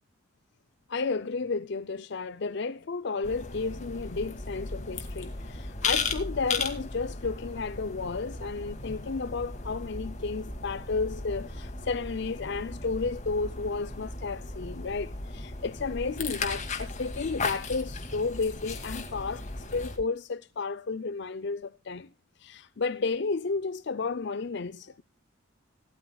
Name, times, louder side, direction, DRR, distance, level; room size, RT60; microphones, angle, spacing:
voice 1, 0.9-22.1 22.4-25.0, left 4 dB, 60° left, 0.5 m, -32 dB
sound 1, 3.2-20.0, left 3 dB, 35° left, 2.2 m, -36 dB
18.0 x 13.0 x 2.3 m
head